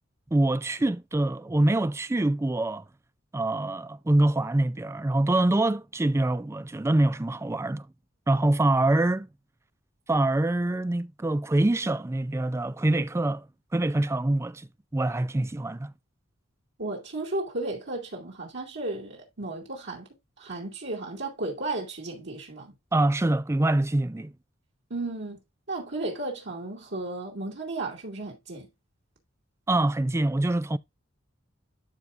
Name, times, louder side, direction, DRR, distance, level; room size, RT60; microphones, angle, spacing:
voice 1, 0.3-2.8 3.3-7.9 8.3-9.3 10.1-13.5 13.7-14.7 14.9-15.9 22.9-24.3 29.7-30.8, right 2 dB, 15° right, 0.4 m, -25 dB
voice 2, 16.8-20.1 20.4-22.7 24.9-25.4 25.7-28.7, right 2 dB, 60° right, 2.5 m, -34 dB
12.0 x 4.7 x 2.5 m
head